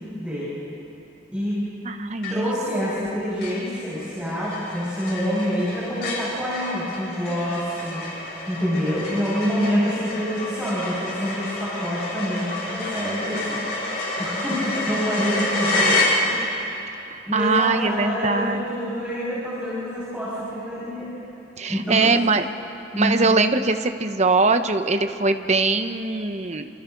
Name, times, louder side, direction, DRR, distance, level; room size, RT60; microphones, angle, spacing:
voice 1, 0.2-0.5 1.3-1.6 2.3-8.1 8.5-13.8 14.2-16.0 16.2-16.8 17.3-21.1 21.7-22.2 22.9-23.2, equal, 5° right, -10 dB, 6.3 m, -27 dB
voice 2, 1.8-2.9 17.1-18.6 21.6-22.4 23.0-26.6, right 3 dB, 40° right, 8 dB, 1.0 m, -22 dB
sound 1, 2.2-2.7 3.0-3.1 3.4-16.7, left 2 dB, 65° left, 6.3 m, -28 dB
29.5 x 26.5 x 4.0 m, 2.9 s
head